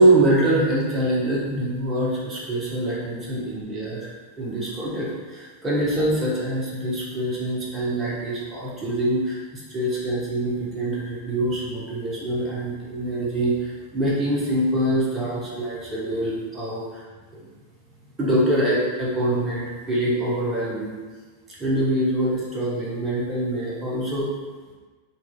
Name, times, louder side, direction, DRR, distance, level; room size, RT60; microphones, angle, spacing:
voice 1, 0.0-4.1 4.4-17.1 18.2-21.0 21.5-24.3, right 1 dB, 20° right, -6 dB, 1.0 m, -24 dB
4.2 x 2.4 x 2.4 m, 1.4 s
figure-of-eight pair, 90°, 0 cm